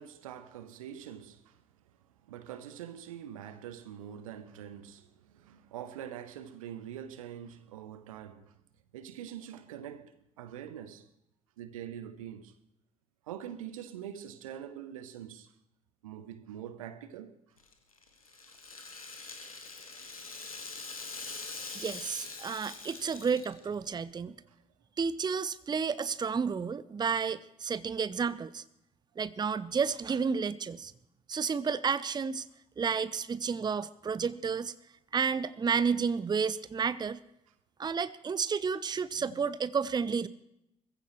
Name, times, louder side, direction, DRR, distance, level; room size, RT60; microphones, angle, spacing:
voice 1, 0.0-1.6 2.2-8.6 8.9-11.1 11.6-12.5 13.2-15.5 16.0-17.4 18.5-18.6 19.9-20.0 24.4-24.6 39.2-39.4, right 10 dB, 75° right, 0.8 m, -44 dB
Rattle (instrument), 17.6-23.8, left 3 dB, 90° left, 0.9 m, -43 dB
voice 2, 21.7-24.4 25.0-28.6 29.2-30.9 31.3-32.5 32.8-34.7 35.1-37.2 37.8-40.3, right 6 dB, 25° right, 0.6 m, -31 dB
21.0 x 15.0 x 3.1 m
figure-of-eight pair, 45°, 17 cm